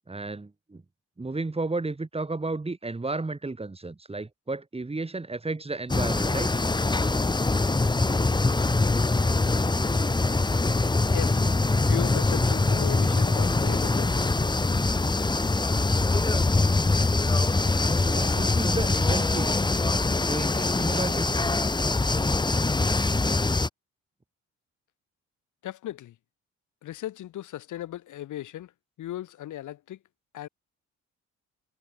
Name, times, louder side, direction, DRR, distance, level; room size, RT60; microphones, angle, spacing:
voice 1, 0.1-0.8 1.2-6.5 17.9-19.5 20.2-21.3, right 3 dB, 20° right, 6.3 m, -33 dB
sound 1, 5.9-23.7, left 3 dB, 15° left, 1.2 m, -23 dB
voice 2, 11.1-14.5 25.6-26.1 26.8-28.7 29.0-30.0 30.3-30.5, left 13 dB, 80° left, 4.3 m, -37 dB
cardioid pair, 90°, 30 cm